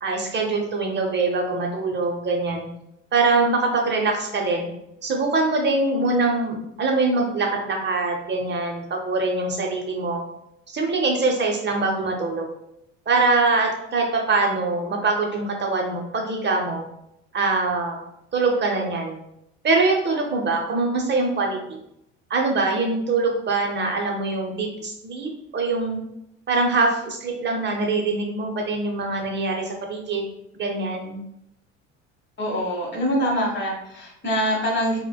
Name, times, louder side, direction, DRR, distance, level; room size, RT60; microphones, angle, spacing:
voice 1, 0.0-2.7 3.1-4.7 5.0-10.2 10.7-12.5 13.1-16.8 17.3-18.0 18.3-19.2 19.6-21.8 22.3-26.0 26.5-30.2 30.5-31.2, right 3 dB, 30° right, 1 dB, 0.7 m, -23 dB
voice 2, 32.4-35.0, equal, 30° left, -1 dB, 1.4 m, -24 dB
4.8 x 2.2 x 2.3 m, 0.80 s
hypercardioid pair, 70°, 35 cm